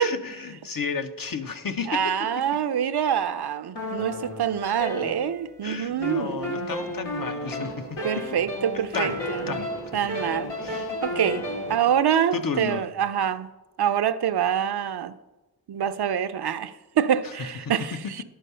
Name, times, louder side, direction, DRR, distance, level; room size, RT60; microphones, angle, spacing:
voice 1, 0.0-2.1 5.6-8.0 8.9-9.2 9.5-9.7 10.6-10.9 12.3-12.9 17.9-18.0, left 5 dB, 55° left, 0.8 m, -32 dB
voice 2, 1.9-6.7 8.0-9.6 9.9-10.5 11.0-11.4 11.7-13.5 13.8-15.1 15.7-18.2, right 9 dB, 65° right, 0.6 m, -25 dB
sound 1, 3.7-5.6 6.0-11.8, equal, 90° left, 2.1 m, -32 dB
11.0 x 4.6 x 5.6 m
cardioid pair, 45°, 41 cm